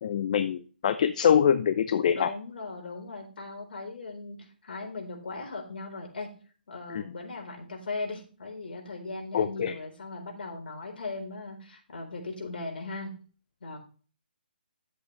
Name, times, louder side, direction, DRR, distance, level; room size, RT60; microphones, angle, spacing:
voice 1, 0.0-2.3 6.9-7.0 9.3-9.7, left 8 dB, 45° left, 11 dB, 0.6 m, -24 dB
voice 2, 2.1-4.4 4.6-6.3 6.7-13.1 13.6-13.8, left 3 dB, 65° left, 2 dB, 4.2 m, -38 dB
10.5 x 8.0 x 3.2 m, 0.38 s
hypercardioid pair, 145°, 6 cm